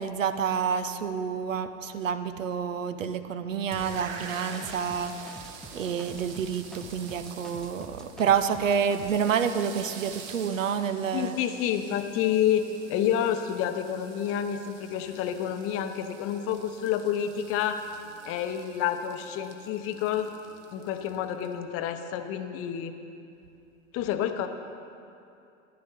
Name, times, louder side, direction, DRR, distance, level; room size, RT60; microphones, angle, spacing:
voice 1, 0.0-5.2 5.7-11.4, right 7 dB, 75° right, 11 dB, 0.7 m, -28 dB
sound 1, 3.7-21.6, right 5 dB, 40° right, 1.3 m, -46 dB
sound 2, 4.3-9.2, equal, ahead, 0.6 m, -47 dB
voice 2, 11.1-17.8 18.2-20.3 20.7-22.9 23.9-24.5, left 9 dB, 35° left, 8 dB, 0.8 m, -29 dB
13.5 x 10.5 x 4.0 m, 2.7 s
figure-of-eight pair, 85°, 39 cm